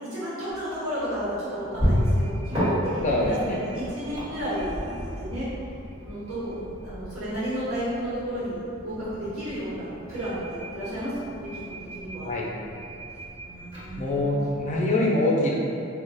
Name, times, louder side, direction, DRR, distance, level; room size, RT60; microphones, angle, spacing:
voice 1, 0.1-5.5 6.0-12.3 13.4-14.4, equal, 75° right, -11 dB, 1.0 m, -32 dB
Car Door Porter Beeps Muffled, 0.5-14.9, equal, 30° right, 1.4 m, -33 dB
voice 2, 3.0-3.6 12.2-12.5 14.0-15.5, left 1 dB, 35° left, -3 dB, 0.4 m, -24 dB
2.4 x 2.1 x 3.9 m, 2.6 s
head